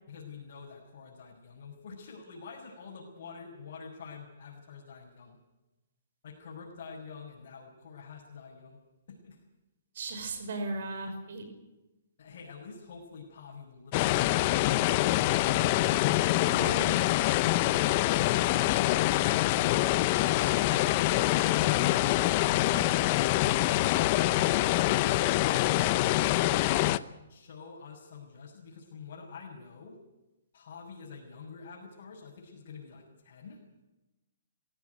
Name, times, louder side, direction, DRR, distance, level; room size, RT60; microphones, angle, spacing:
voice 1, 0.1-5.4 6.2-8.8 9.1-9.4 12.2-15.9 17.8-19.8 20.1-22.1 22.5-22.8 23.7-25.1 26.0-26.5 27.3-30.0 30.5-33.6, left 5 dB, 55° left, -3 dB, 6.2 m, -47 dB
voice 2, 9.9-11.4 16.4-16.9 22.7-22.9, right 2 dB, 65° right, 6 dB, 5.6 m, -36 dB
sound 1, 13.9-27.0, left 16 dB, 35° left, 0.7 m, -25 dB
22.0 x 16.5 x 9.5 m, 1.0 s
hypercardioid pair, 155°, 0 cm